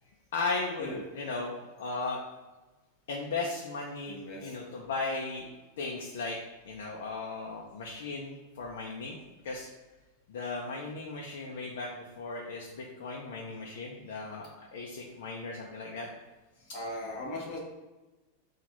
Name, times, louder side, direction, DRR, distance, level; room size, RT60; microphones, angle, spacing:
voice 1, 0.3-0.9 1.1-2.2 3.1-5.5 5.8-6.4 6.6-9.2 9.4-9.7 10.3-14.5 14.7-16.1 16.6-16.7, left 3 dB, 75° left, -2 dB, 0.6 m, -36 dB
voice 2, 4.1-4.5 16.7-17.6, left 1 dB, 30° left, -3 dB, 1.1 m, -38 dB
5.8 x 2.4 x 3.0 m, 1.2 s
supercardioid pair, 175°, 0 cm